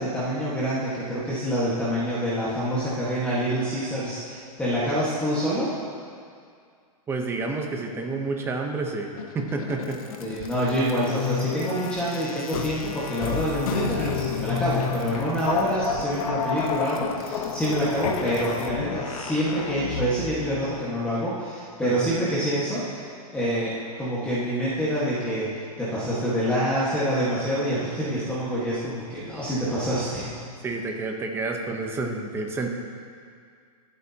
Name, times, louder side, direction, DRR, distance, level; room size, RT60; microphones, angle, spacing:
voice 1, 0.0-5.7 10.2-30.3, equal, 5° left, -10 dB, 1.5 m, -26 dB
voice 2, 7.1-9.1 9.3-10.0 21.8-22.1 27.7-27.8 30.6-32.7, right 3 dB, 10° right, 2 dB, 0.9 m, -29 dB
sound 1, 9.2-20.4, left 7 dB, 60° left, 1.0 m, -31 dB
23.5 x 8.3 x 2.9 m, 2.2 s
supercardioid pair, 165°, 20 cm